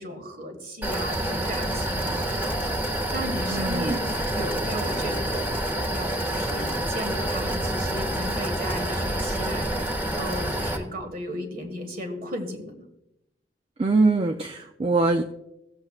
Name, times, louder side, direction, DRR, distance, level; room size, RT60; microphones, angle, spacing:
voice 1, 0.0-2.6 3.1-12.8, equal, 50° right, 5 dB, 1.7 m, -35 dB
sound 1, 0.8-10.8, right 1 dB, 10° right, 1.4 m, -27 dB
voice 2, 3.5-4.0 13.8-15.2, right 3 dB, 30° right, 5 dB, 0.4 m, -23 dB
16.5 x 7.8 x 2.4 m, 0.87 s
head